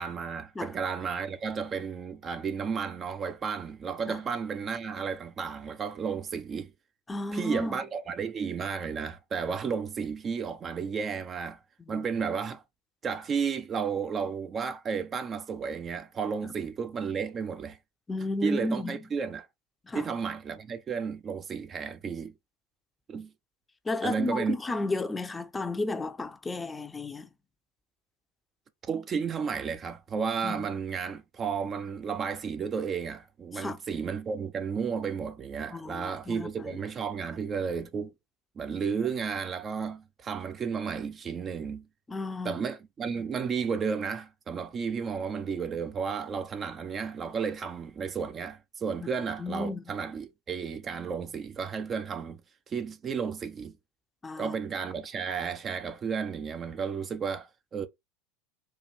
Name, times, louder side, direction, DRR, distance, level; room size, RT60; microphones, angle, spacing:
voice 1, 0.0-6.7 7.3-11.6 11.9-12.6 13.0-17.8 18.4-19.5 19.9-22.3 23.1-23.3 24.0-24.6 28.9-38.1 38.6-41.9 42.4-52.4 52.7-53.7 54.4-57.9, right 6 dB, 30° right, 0.6 m, -33 dB
voice 2, 7.1-7.8 11.9-12.1 18.1-19.0 19.9-20.1 23.9-27.3 30.4-30.6 33.5-33.8 35.7-36.8 42.1-42.6 49.0-49.1 49.4-49.8 54.2-54.5, left 2 dB, 15° left, 0.7 m, -33 dB
4.5 x 2.6 x 4.3 m
figure-of-eight pair, 80°, 0 cm